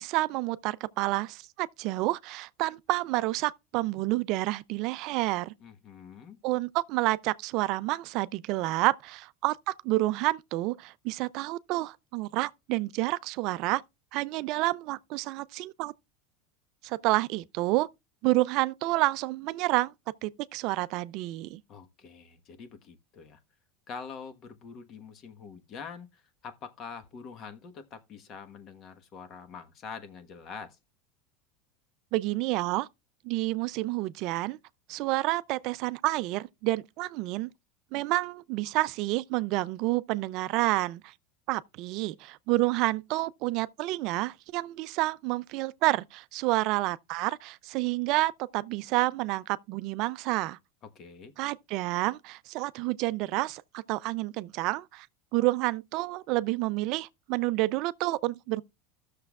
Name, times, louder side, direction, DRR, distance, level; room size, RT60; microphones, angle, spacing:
voice 1, 0.0-5.5 6.4-13.8 14.1-15.9 16.8-17.9 18.2-19.9 20.2-21.6 32.1-32.9 33.2-34.6 34.9-37.5 37.9-41.1 41.5-50.6 51.4-55.1 55.3-58.6, right 19 dB, 60° right, 0.4 m, -29 dB
voice 2, 5.6-6.4 21.7-23.4 23.9-30.8 50.8-51.3, left 5 dB, 45° left, 1.2 m, -45 dB
15.0 x 6.6 x 2.4 m
supercardioid pair, 120°, 0 cm